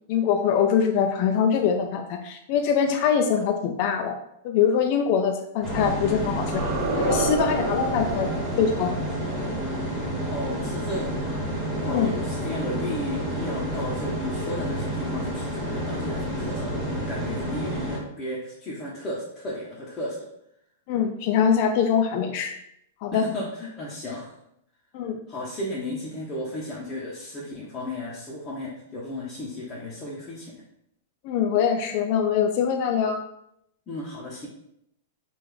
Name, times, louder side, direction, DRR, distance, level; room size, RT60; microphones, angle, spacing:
voice 1, 0.1-4.2 4.4-6.6 7.0-8.3 8.6-9.0 11.8-12.1 20.9-22.5 23.0-23.3 24.9-25.2 31.2-33.2, left 7 dB, 45° left, 5 dB, 0.3 m, -23 dB
sound 1, 5.6-18.0, equal, 5° right, 1.1 m, -29 dB
sound 2, 6.4-11.3, right 2 dB, 40° right, 1.0 m, -31 dB
voice 2, 10.3-20.3 23.1-24.4 25.3-30.5 33.9-34.5, left 1 dB, 20° left, -7 dB, 0.7 m, -34 dB
3.1 x 2.4 x 3.7 m, 0.76 s
hypercardioid pair, 145°, 0 cm